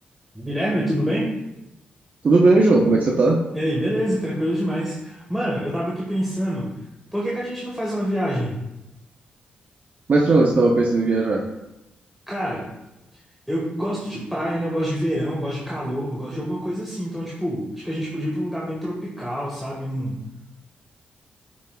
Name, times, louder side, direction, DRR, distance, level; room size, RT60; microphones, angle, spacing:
voice 1, 0.3-1.3 3.5-6.7 7.1-8.6 12.3-12.7 13.5-20.2, equal, ahead, -5 dB, 1.6 m, -26 dB
voice 2, 2.2-3.4 10.1-11.4, right 2 dB, 50° right, -1 dB, 0.9 m, -17 dB
9.1 x 6.3 x 2.4 m, 0.93 s
cardioid pair, 65°, 3 cm